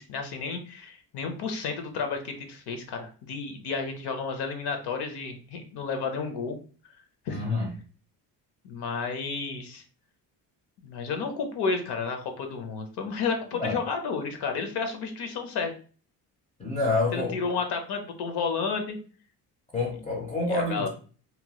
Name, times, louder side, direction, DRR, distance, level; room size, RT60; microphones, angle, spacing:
voice 1, 0.0-6.6 7.3-7.4 8.6-9.8 10.8-15.7 17.1-19.0 20.5-20.9, left 5 dB, 70° left, 0.7 m, -31 dB
voice 2, 7.3-7.7 13.6-13.8 16.6-17.4 19.7-20.9, left 2 dB, 20° left, 0.4 m, -27 dB
2.9 x 2.1 x 2.8 m
cardioid pair, 170°, 42 cm